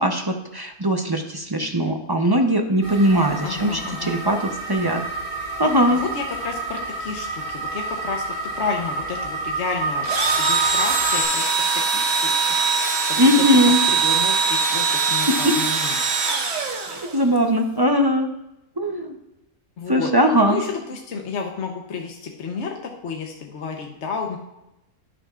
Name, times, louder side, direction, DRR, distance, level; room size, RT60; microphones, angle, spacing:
voice 1, 0.0-5.0 5.6-6.0 13.2-13.8 15.4-15.5 16.9-18.3 18.8-19.2 19.9-20.6, equal, 25° right, 3 dB, 0.6 m, -20 dB
sound 1, 2.8-11.2, right 2 dB, 65° right, 4.8 m, -28 dB
voice 2, 3.4-4.2 5.9-8.3 8.6-11.5 11.7-12.3 12.7-13.2 13.9-16.0 19.8-20.1 20.4-24.4, left 5 dB, 55° left, 1 dB, 1.1 m, -31 dB
Engine / Drill, 10.0-17.4, right 5 dB, 50° right, 1.2 m, -22 dB
11.0 x 11.0 x 2.5 m, 0.89 s
omnidirectional pair, 1.6 m